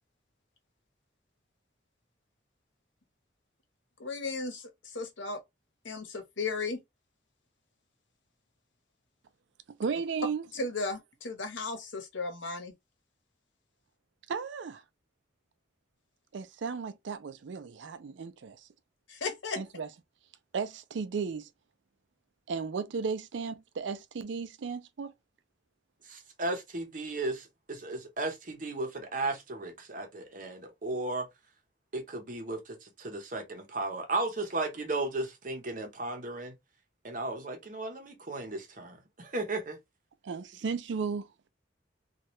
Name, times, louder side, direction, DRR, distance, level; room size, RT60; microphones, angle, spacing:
voice 1, 4.0-5.4 5.8-6.8 10.5-12.7 19.1-19.6, left 3 dB, 80° left, 0.9 m, -35 dB
voice 2, 9.8-10.4 14.3-14.8 16.3-18.6 19.6-19.9 20.5-21.5 22.5-25.1 40.2-41.3, right 5 dB, 75° right, 0.4 m, -35 dB
voice 3, 26.1-31.3 31.9-36.5 37.0-39.8, right 2 dB, 45° right, 0.8 m, -35 dB
2.8 x 2.3 x 3.0 m
head